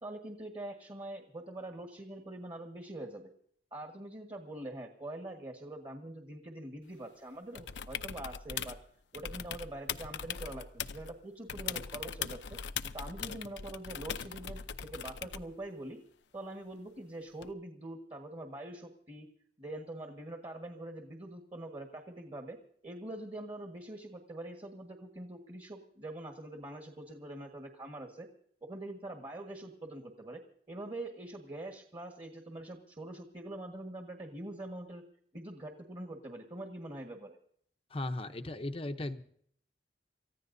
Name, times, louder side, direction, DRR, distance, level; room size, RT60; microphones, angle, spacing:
voice 1, 0.0-3.3 3.7-8.8 9.1-12.6 12.9-16.0 16.3-19.3 19.6-22.6 22.8-28.3 28.6-30.4 30.7-35.0 35.3-37.4, right 1 dB, 30° right, 3 dB, 1.6 m, -44 dB
sound 1, 7.5-8.8 9.1-11.1 11.5-15.5 17.4-17.5, left 7 dB, 80° left, 0.7 m, -40 dB
voice 2, 37.9-39.2, left 2 dB, 30° left, 6 dB, 0.7 m, -37 dB
29.0 x 15.0 x 2.7 m, 0.65 s
head